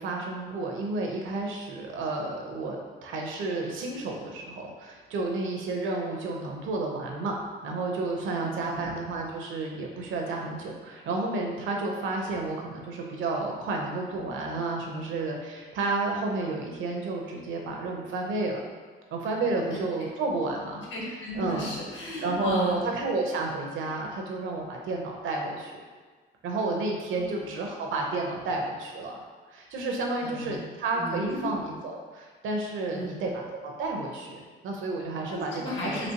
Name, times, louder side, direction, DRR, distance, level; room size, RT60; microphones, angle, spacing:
voice 1, 0.0-7.4 7.6-18.6 19.1-20.8 21.3-21.7 22.2-25.8 26.4-29.2 29.5-36.1, right 3 dB, 80° right, 0 dB, 0.8 m, -31 dB
voice 2, 8.3-8.8 19.6-19.8 20.9-22.8 27.1-27.5 30.2-30.6 30.9-31.5 32.9-33.2 35.3-36.1, left 1 dB, 70° left, -4 dB, 1.4 m, -34 dB
4.2 x 3.0 x 2.8 m, 1.4 s
cardioid pair, 90°, 20 cm